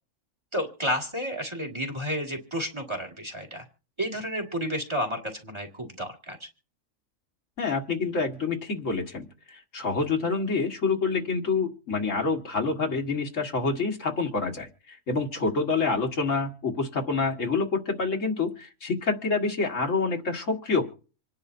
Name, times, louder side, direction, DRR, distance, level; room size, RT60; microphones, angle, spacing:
voice 1, 0.5-3.6 4.0-6.5, equal, 20° right, 1 dB, 2.1 m, -31 dB
voice 2, 7.6-20.9, left 4 dB, 70° left, 2 dB, 2.1 m, -27 dB
26.5 x 10.5 x 2.7 m, 0.38 s
omnidirectional pair, 1.4 m